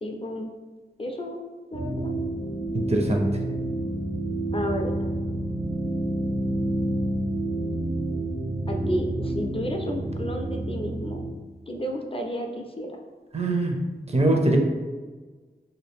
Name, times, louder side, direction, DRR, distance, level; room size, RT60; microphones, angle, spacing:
voice 1, 0.0-0.5 1.0-2.1 4.5-5.1 8.7-11.2 11.7-13.0, equal, 30° left, 3 dB, 0.4 m, -32 dB
sound 1, 1.7-11.3, right 1 dB, 85° right, 0.6 m, -29 dB
voice 2, 2.7-3.2 13.3-13.8 14.1-14.6, right 1 dB, 35° right, 2 dB, 0.5 m, -22 dB
2.7 x 2.3 x 3.5 m, 1.4 s
wide cardioid pair, 55°, 18 cm